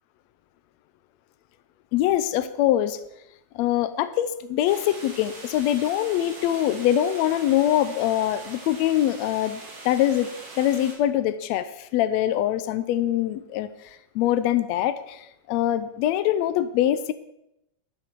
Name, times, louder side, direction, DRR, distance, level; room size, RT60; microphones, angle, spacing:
voice 1, 1.9-3.0 3.6-9.6 9.9-10.3 10.6-17.1, left 12 dB, 75° left, 12 dB, 1.7 m, -23 dB
sound 1, 4.6-10.9, right 2 dB, 60° right, 3.8 m, -42 dB
12.0 x 10.5 x 4.6 m, 0.83 s
omnidirectional pair, 3.4 m